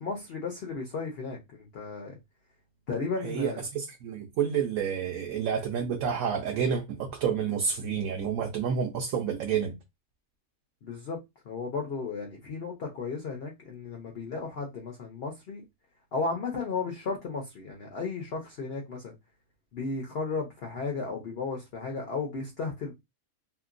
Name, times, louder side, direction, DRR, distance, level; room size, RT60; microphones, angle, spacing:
voice 1, 0.0-2.1 2.9-3.6 10.8-11.2 11.5-15.7 16.1-19.1 19.7-22.9, left 4 dB, 55° left, 0.8 m, -34 dB
voice 2, 3.2-9.7, right 7 dB, 70° right, 1.0 m, -29 dB
2.9 x 2.8 x 2.5 m
omnidirectional pair, 1.5 m